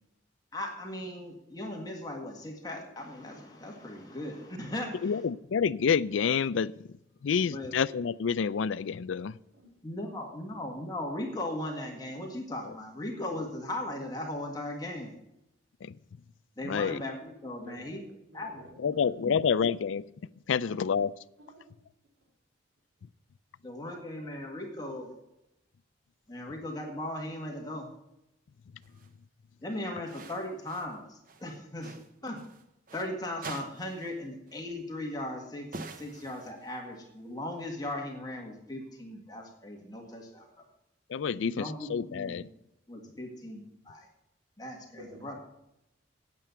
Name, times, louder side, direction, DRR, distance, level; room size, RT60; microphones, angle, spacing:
voice 1, 0.5-5.2 7.4-7.7 9.8-15.1 16.6-18.0 18.3-18.6 19.2-19.4 23.6-25.1 26.3-27.9 29.6-31.9 32.2-32.4 32.9-40.5 41.3-42.4 42.9-44.1 44.6-45.3, left 1 dB, 20° left, 1 dB, 1.7 m, -38 dB
voice 2, 5.0-6.7 7.2-9.3 16.7-17.0 18.8-20.0 20.5-21.1 41.1-41.6 41.9-42.4, left 6 dB, 75° left, 18 dB, 0.4 m, -28 dB
voice 3, 9.1-9.7 10.0-10.2 17.6-18.0 18.3-19.1 19.4-19.5 20.5-20.8 21.4-21.7 45.0-45.3, equal, 80° right, 0 dB, 2.6 m, -52 dB
sound 1, 28.8-29.1 30.1-31.0 31.3-33.1 33.4-34.2 34.5-34.6 35.7-36.9, right 3 dB, 45° right, 0.8 m, -45 dB
9.0 x 8.5 x 6.8 m, 0.87 s
head